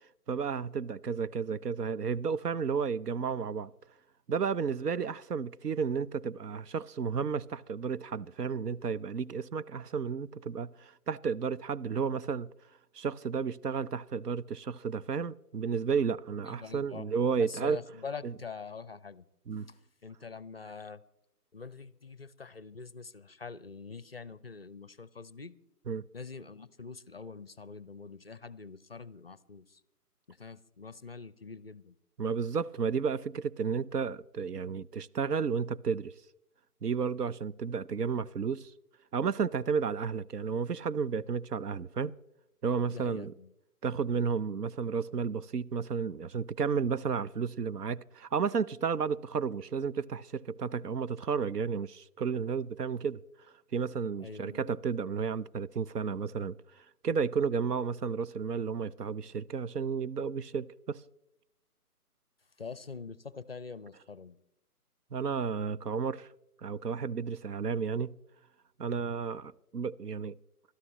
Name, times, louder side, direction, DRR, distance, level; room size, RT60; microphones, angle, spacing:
voice 1, 0.3-3.7 4.3-12.5 12.9-17.8 18.2-18.3 19.5-19.7 25.9-26.0 32.2-36.1 36.8-38.7 39.1-42.1 42.6-43.3 43.8-53.2 53.7-61.0 65.1-66.3 66.6-68.2 68.8-70.3, right 6 dB, 80° right, 0.7 m, -32 dB
voice 2, 16.5-17.0 17.4-19.2 19.7-19.8 20.0-21.0 21.5-25.6 26.1-29.8 30.3-31.9 42.9-43.5 54.2-54.7 62.6-64.4, left 5 dB, 40° left, 0.4 m, -44 dB
26.0 x 13.0 x 3.0 m
figure-of-eight pair, 145°, 46 cm